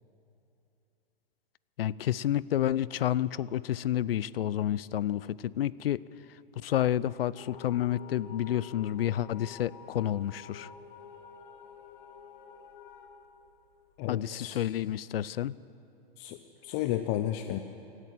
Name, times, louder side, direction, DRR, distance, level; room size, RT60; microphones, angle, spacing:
voice 1, 1.8-6.0 6.6-10.7 14.1-15.5, left 12 dB, 75° left, 21 dB, 0.5 m, -30 dB
sound 1, 7.3-14.2, left 7 dB, 55° left, 1.4 m, -49 dB
voice 2, 14.0-14.6 16.2-17.6, left 12 dB, 30° left, 8 dB, 0.6 m, -33 dB
17.0 x 11.0 x 7.6 m, 2.8 s
hypercardioid pair, 130°, 29 cm